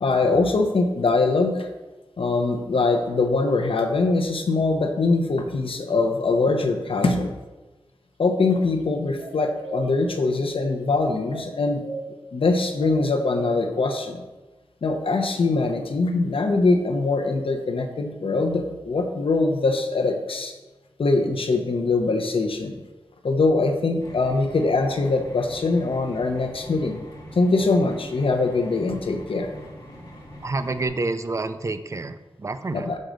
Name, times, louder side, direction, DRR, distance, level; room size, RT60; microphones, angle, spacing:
voice 1, 0.0-1.7 2.2-7.3 8.2-11.8 12.3-14.2 14.8-20.5 21.0-22.8 23.2-27.0 27.3-29.5 32.7-33.0, left 3 dB, 70° left, 5 dB, 0.8 m, -22 dB
sound 1, 9.2-9.8 11.3-12.0 12.8-13.4, right 3 dB, 80° right, 1.2 m, -36 dB
sound 2, 24.0-30.9, equal, 40° left, 2.1 m, -43 dB
voice 2, 30.4-32.9, right 3 dB, 30° right, 11 dB, 0.4 m, -28 dB
6.5 x 3.8 x 6.3 m, 1.1 s
wide cardioid pair, 90°, 9 cm